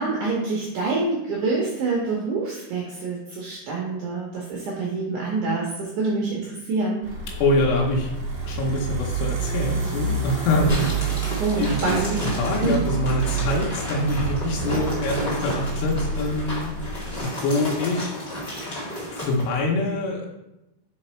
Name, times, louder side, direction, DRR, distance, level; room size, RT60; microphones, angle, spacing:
voice 1, 0.0-7.0 11.4-12.8, right 3 dB, 75° right, -3 dB, 1.8 m, -26 dB
sound 1, 7.0-17.2, right 5 dB, 55° right, 1.9 m, -29 dB
voice 2, 7.4-8.1 8.5-10.9 11.6-11.8 12.2-16.7 17.2-18.1 18.8-20.3, left 2 dB, 90° left, -1 dB, 3.0 m, -25 dB
sound 2, 10.7-19.5, equal, 45° left, 0.7 m, -32 dB
5.1 x 4.9 x 4.3 m, 0.92 s
omnidirectional pair, 4.7 m